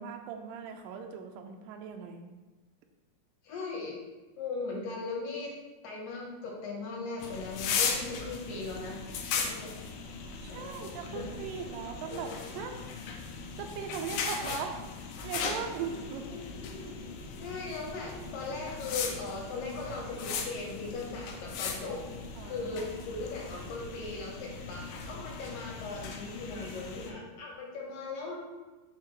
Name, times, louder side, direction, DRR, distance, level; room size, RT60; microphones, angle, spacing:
voice 1, 0.0-2.2 10.4-12.8 13.6-14.8 15.2-16.3 22.4-23.0, right 6 dB, 90° right, 4 dB, 2.0 m, -39 dB
voice 2, 3.4-3.9 4.4-5.5 5.8-9.0 9.4-11.3 16.3-16.5 17.4-22.0 22.4-28.4, left 3 dB, 70° left, -1 dB, 2.5 m, -39 dB
sound 1, 7.2-27.1, left 5 dB, 90° left, 1.9 m, -38 dB
5.8 x 5.6 x 3.0 m, 1.2 s
omnidirectional pair, 4.5 m